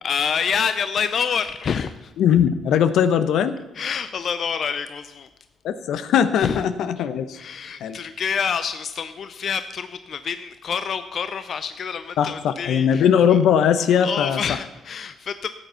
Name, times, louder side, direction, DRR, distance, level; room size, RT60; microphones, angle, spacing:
voice 1, 0.0-2.1 3.8-5.3 6.4-6.6 7.3-13.0 14.0-15.5, left 6 dB, 55° left, 11 dB, 0.5 m, -27 dB
voice 2, 2.2-3.6 5.6-7.4 7.8-8.0 12.2-14.4, left 8 dB, 80° left, 11 dB, 0.8 m, -19 dB
13.5 x 8.1 x 5.6 m, 1.1 s
cardioid pair, 90°, 0 cm